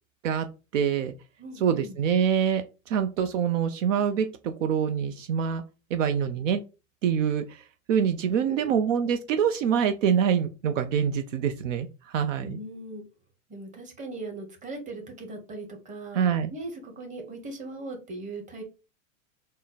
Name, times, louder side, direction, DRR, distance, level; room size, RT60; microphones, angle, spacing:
voice 1, 0.7-1.1 1.6-5.6 5.9-6.6 7.0-7.6 7.9-12.6 16.1-16.5, right 8 dB, 70° right, 8 dB, 0.6 m, -25 dB
voice 2, 1.4-2.0 8.4-8.7 12.4-13.0 13.5-18.6, right 2 dB, 20° right, 2 dB, 1.1 m, -39 dB
3.7 x 2.1 x 4.0 m, 0.31 s
hypercardioid pair, 125°, 40 cm